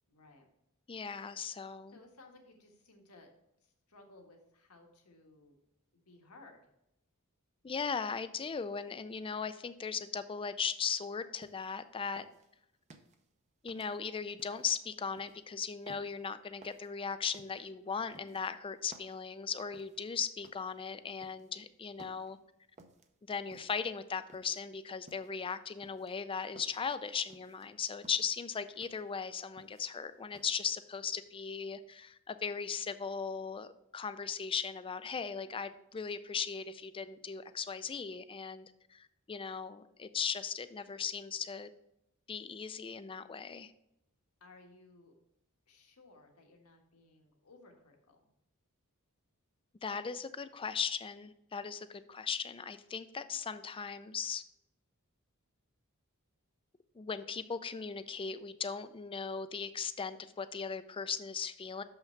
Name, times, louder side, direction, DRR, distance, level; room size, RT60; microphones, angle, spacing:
voice 1, 0.1-0.5 1.9-3.3 3.6-5.6 5.9-6.7 44.4-45.2 45.7-48.3, left 2 dB, 80° left, 2 dB, 1.5 m, -59 dB
voice 2, 0.9-2.0 7.6-12.2 13.6-22.4 23.3-41.7 42.3-43.7 49.8-54.4 57.0-61.8, left 6 dB, 25° left, 12 dB, 0.4 m, -38 dB
sound 1, 11.4-11.8 12.2-13.2 13.7-14.7 15.1-15.4 15.9-16.2 16.6-16.9 17.3-17.6 18.1-19.2 19.7-20.0 20.4-20.7 21.2-21.6 22.0-22.3 22.8-23.1 23.5-23.9 24.3-24.6 25.1-25.4 25.8-26.9 27.3-27.7 28.0-28.3 28.8-29.1 29.4-30.0 30.3-30.6, right 2 dB, 30° right, 0.7 m, -57 dB
6.7 x 5.8 x 4.4 m, 0.83 s
head